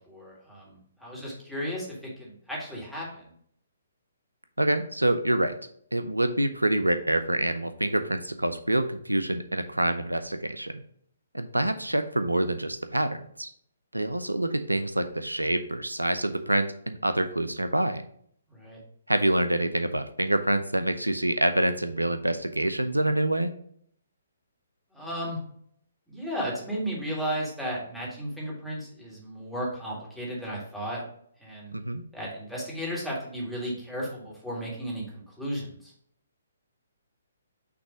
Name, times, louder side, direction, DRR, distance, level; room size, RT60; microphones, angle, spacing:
voice 1, 0.1-1.9 2.2-3.2 18.5-18.8 24.9-25.4 26.1-31.0 31.4-31.8 32.1-35.9, equal, ahead, -6 dB, 1.9 m, -34 dB
voice 2, 4.6-5.5 5.9-10.8 11.3-13.5 13.9-18.0 19.1-23.5 31.7-32.0, right 1 dB, 85° right, 10 dB, 0.4 m, -26 dB
6.0 x 3.1 x 5.0 m, 0.65 s
figure-of-eight pair, 130°, 0 cm